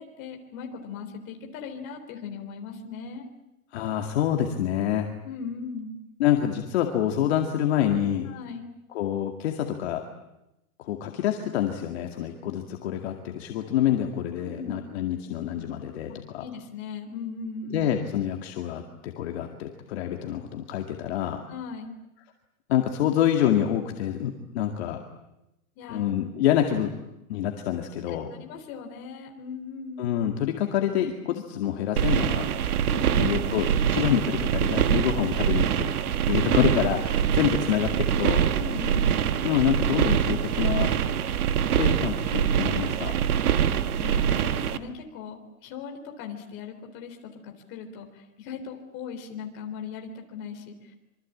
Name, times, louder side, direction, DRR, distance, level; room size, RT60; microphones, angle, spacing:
voice 1, 0.0-3.3 5.2-5.9 8.2-8.7 14.4-14.8 16.1-17.9 21.5-22.0 25.8-26.1 28.1-30.0 32.9-33.6 36.3-36.4 38.6-39.3 43.7-50.9, left 5 dB, 30° left, 3 dB, 3.8 m, -38 dB
voice 2, 3.7-5.1 6.2-8.3 8.9-10.0 10.8-16.4 17.7-21.4 22.7-25.0 25.9-26.9 27.3-28.3 30.0-32.6 33.2-35.9 36.3-38.5 39.4-40.9 41.8-43.2, left 10 dB, 45° left, 3 dB, 2.2 m, -27 dB
sound 1, 32.0-44.8, right 9 dB, 80° right, 1.8 m, -24 dB
26.5 x 24.0 x 8.6 m, 0.90 s
supercardioid pair, 170°, 43 cm